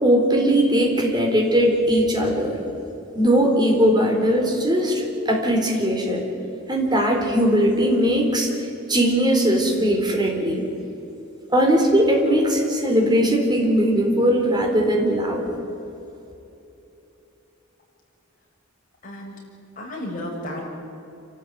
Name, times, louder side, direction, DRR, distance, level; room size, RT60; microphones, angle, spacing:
voice 1, 0.0-2.6 3.1-6.3 6.7-8.5 8.9-10.6 11.5-15.4, equal, 20° right, 0 dB, 4.0 m, -19 dB
voice 2, 19.0-19.3 19.8-20.6, left 1 dB, 40° left, -3 dB, 6.5 m, -32 dB
28.5 x 13.0 x 9.4 m, 2.9 s
head